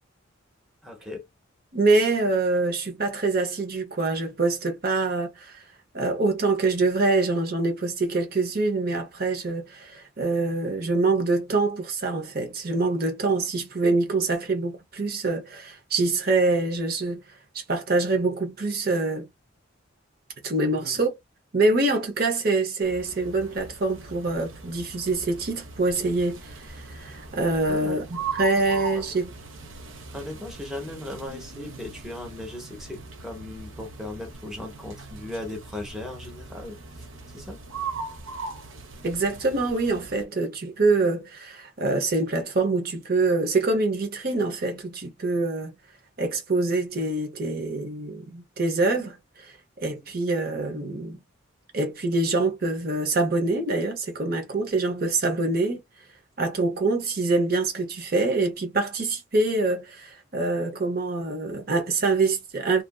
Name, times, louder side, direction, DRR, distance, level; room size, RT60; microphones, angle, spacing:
voice 1, 0.8-1.2 20.7-21.0 27.7-28.0 28.7-29.0 30.1-37.6 49.9-50.1, left 1 dB, ahead, 0.8 m, -38 dB
voice 2, 1.7-5.6 5.9-17.2 17.5-19.3 20.4-21.2 21.5-29.3 39.0-45.7 46.2-51.2 51.7-55.8 56.4-62.8, right 3 dB, 50° right, 0.8 m, -25 dB
sound 1, 22.8-40.3, right 4 dB, 75° right, 0.7 m, -40 dB
2.7 x 2.5 x 2.2 m
head